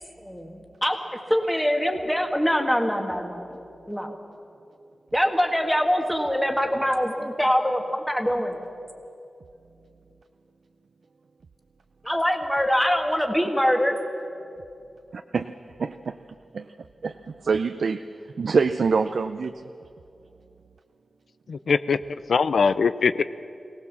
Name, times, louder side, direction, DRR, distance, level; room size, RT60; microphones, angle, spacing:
voice 1, 0.2-1.0 1.3-3.4 3.9-4.2 5.1-8.6 12.0-13.9, equal, 5° left, 3 dB, 1.6 m, -23 dB
voice 2, 15.1-15.5 15.8-16.2 16.5-16.7 17.0-18.1 18.4-19.7, right 5 dB, 70° right, 8 dB, 0.5 m, -25 dB
voice 3, 21.5-23.2, left 5 dB, 80° left, 14 dB, 0.5 m, -22 dB
23.0 x 18.0 x 7.2 m, 2.6 s
wide cardioid pair, 140°, 0 cm